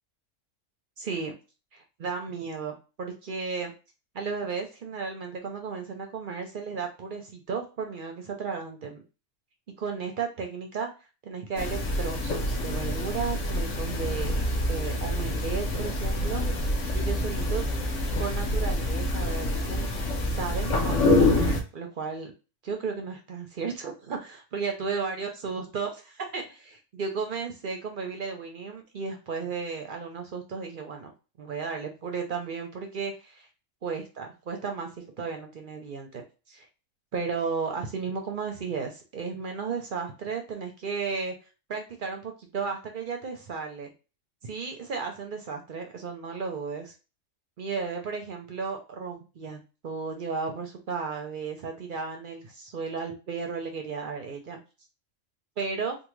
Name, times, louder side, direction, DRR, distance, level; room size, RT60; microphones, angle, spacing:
voice 1, 1.0-1.4 1.7-3.7 4.1-9.0 9.8-10.9 11.2-14.3 14.7-16.4 16.9-17.6 18.2-19.9 20.3-22.3 22.6-31.1 31.4-33.5 33.8-34.9 35.2-36.7 37.1-41.4 41.7-43.9 44.4-46.9 47.6-49.6 49.8-54.6 55.6-56.0, right 5 dB, 55° right, 4 dB, 0.6 m, -34 dB
sound 1, 11.6-21.6, left 1 dB, 70° left, 1.1 m, -26 dB
3.5 x 2.2 x 3.1 m, 0.32 s
omnidirectional pair, 1.4 m